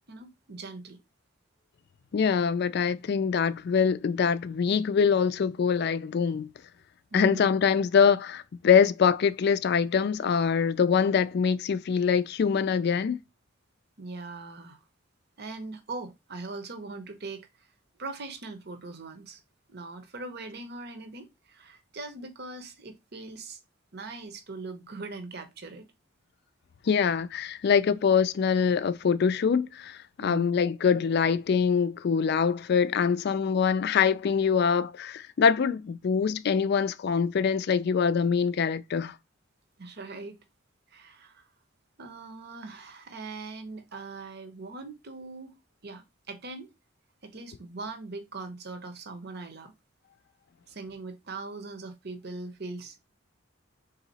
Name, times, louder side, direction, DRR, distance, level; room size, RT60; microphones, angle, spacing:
voice 1, 0.1-1.0 7.1-7.5 14.0-14.8 15.4-17.5 18.0-19.4 19.7-23.6 23.9-25.9 30.2-30.6 39.8-40.4 40.9-41.5 42.0-45.5 45.8-46.7 47.2-49.7 50.7-53.0, right 3 dB, 55° right, 0.9 m, -41 dB
voice 2, 2.1-6.5 7.1-13.2 26.9-39.1, left 6 dB, 55° left, 0.3 m, -24 dB
3.9 x 2.8 x 4.0 m
head